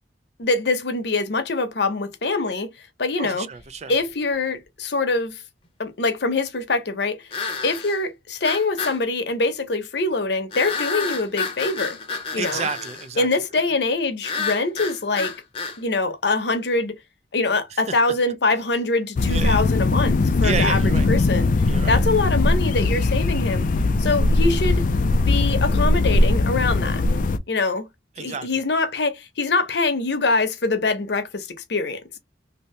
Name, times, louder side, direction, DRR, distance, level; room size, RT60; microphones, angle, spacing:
voice 1, 0.4-2.7 3.0-3.5 3.9-5.4 5.8-7.3 7.6-12.0 12.3-12.7 13.2-15.3 15.8-17.0 17.3-20.8 21.1-21.5 21.9-23.7 24.0-24.8 25.2-27.0 27.5-27.9 28.2-32.0, left 3 dB, 65° left, 0.8 m, -24 dB
voice 2, 3.2-3.9 12.4-13.3 17.7-17.9 19.3-19.6 20.4-21.1 21.7-22.0 28.2-28.6, right 5 dB, 40° right, 0.4 m, -30 dB
sound 1, 3.7-3.8 7.3-8.0 8.4-9.0 10.5-13.1 14.2-15.8, left 5 dB, 30° left, 0.7 m, -29 dB
sound 2, 19.2-27.4, left 2 dB, 45° left, 0.3 m, -20 dB
2.7 x 2.7 x 3.1 m
head